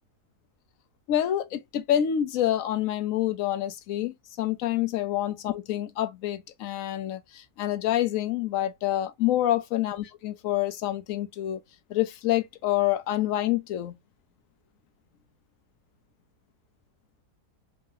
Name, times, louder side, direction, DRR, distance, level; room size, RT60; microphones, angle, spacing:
voice 1, 1.1-11.6 11.9-14.0, left 12 dB, 70° left, 0.9 m, -27 dB
3.7 x 3.3 x 2.7 m
omnidirectional pair, 1.7 m